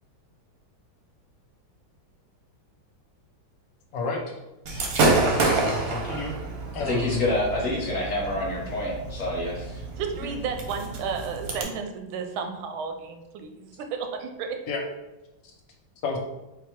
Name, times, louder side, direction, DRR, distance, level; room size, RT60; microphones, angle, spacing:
voice 1, 3.9-4.2 5.5-6.4 6.7-7.3 14.7-14.8 16.0-16.2, left 3 dB, 70° left, 1 dB, 1.3 m, -30 dB
Gunshot gunfire / Fireworks, 4.7-11.6, right 2 dB, 65° right, 0.9 m, -28 dB
voice 2, 6.9-9.8, left 2 dB, 50° left, -4 dB, 1.1 m, -27 dB
voice 3, 10.0-14.6, right 5 dB, 85° right, 5 dB, 1.4 m, -33 dB
4.5 x 2.1 x 4.3 m, 0.99 s
omnidirectional pair, 2.2 m